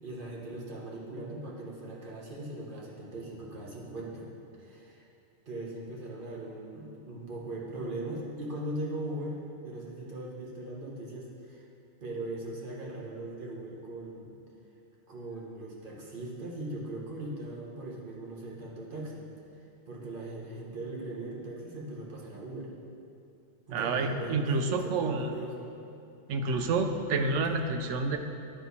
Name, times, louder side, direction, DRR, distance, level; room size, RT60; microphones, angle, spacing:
voice 1, 0.0-4.3 4.5-5.0 5.5-11.6 12.0-14.3 15.1-19.3 19.9-22.7 23.7-25.7, right 1 dB, 45° right, -3 dB, 1.3 m, -39 dB
voice 2, 23.7-25.3 26.3-28.2, right 3 dB, 85° right, 6 dB, 1.0 m, -29 dB
11.0 x 4.4 x 4.1 m, 2.7 s
omnidirectional pair, 1.2 m